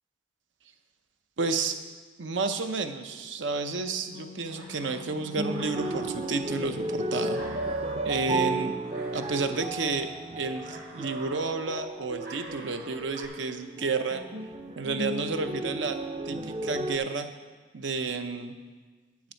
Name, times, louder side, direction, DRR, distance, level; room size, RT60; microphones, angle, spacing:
voice 1, 1.4-1.8 2.2-7.4 8.0-8.7 9.1-10.1 10.4-14.2 14.8-16.0 16.3-17.3 17.7-18.5, right 4 dB, 85° right, 8 dB, 0.7 m, -31 dB
sound 1, 3.4-13.3, right 2 dB, 50° right, 1.7 m, -49 dB
Wind instrument woodwind instrument, 3.8-8.0, left 5 dB, 75° left, 0.4 m, -47 dB
sound 2, 5.4-17.0, right 2 dB, 30° right, 0.5 m, -34 dB
9.7 x 9.6 x 4.5 m, 1.4 s
head